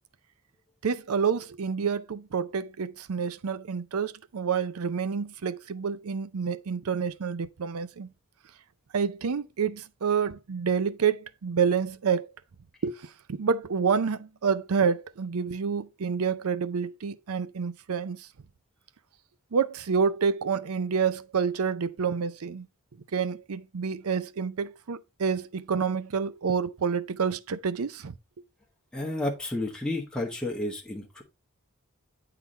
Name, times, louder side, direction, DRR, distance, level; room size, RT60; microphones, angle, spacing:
voice 1, 0.8-8.1 8.9-12.3 12.8-13.0 13.3-18.3 19.5-22.7 23.1-28.1, right 6 dB, 80° right, 0.5 m, -28 dB
voice 2, 28.9-31.2, left 1 dB, 5° left, 1.1 m, -31 dB
8.4 x 3.9 x 4.1 m
head